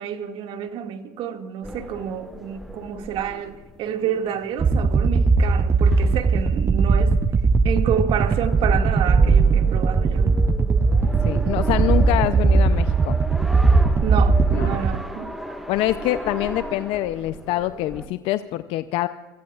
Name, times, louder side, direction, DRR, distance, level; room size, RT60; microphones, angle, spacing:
voice 1, 0.0-7.2 7.6-10.4 14.0-15.3, right 8 dB, 55° right, 2.1 m, -29 dB
sound 1, 1.6-18.1, equal, ahead, 1.8 m, -37 dB
sound 2, 4.6-15.0, right 4 dB, 25° right, 0.6 m, -19 dB
voice 2, 11.2-13.2 14.5-14.8 15.7-19.1, left 15 dB, 60° left, 0.6 m, -25 dB
28.0 x 17.0 x 2.5 m
hypercardioid pair, 85°, 11 cm